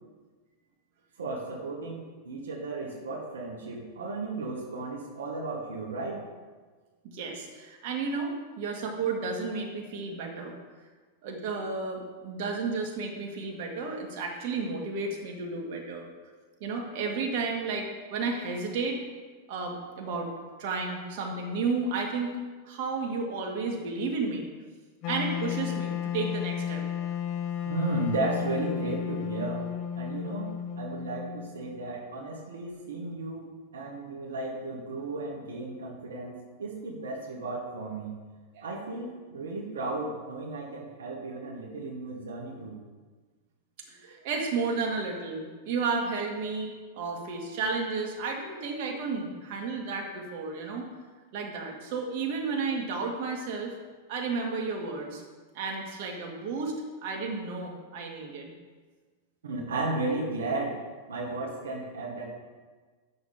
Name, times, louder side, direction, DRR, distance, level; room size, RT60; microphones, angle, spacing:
voice 1, 1.2-6.2 27.6-29.7 29.9-30.5 30.8-33.5 33.7-38.1 38.6-42.8 59.4-60.7 61.1-62.2, right 2 dB, 85° right, -2 dB, 1.6 m, -34 dB
voice 2, 7.1-10.5 11.2-16.1 16.6-19.0 19.5-22.4 22.6-24.5 25.1-27.1 38.5-38.7 43.9-50.9 51.3-53.7 54.1-55.2 55.5-56.7 57.0-58.5, right 4 dB, 55° right, 0 dB, 2.0 m, -32 dB
Wind instrument woodwind instrument, 25.0-32.0, left 9 dB, 45° left, 0.7 m, -33 dB
9.3 x 6.8 x 4.3 m, 1.4 s
hypercardioid pair, 110°, 0 cm